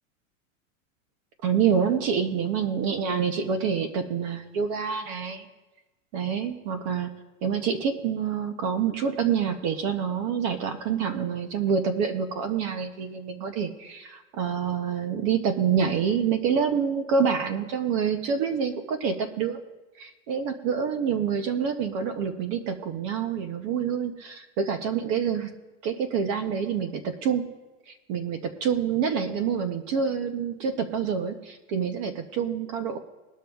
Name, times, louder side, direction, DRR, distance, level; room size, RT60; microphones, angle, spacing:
voice 1, 1.4-5.5 6.1-7.1 7.4-19.6 20.0-25.5 25.8-27.4 28.1-33.0, right 7 dB, 25° right, 7 dB, 0.5 m, -27 dB
20.5 x 12.0 x 2.3 m, 1.1 s
supercardioid pair, 175°, 40 cm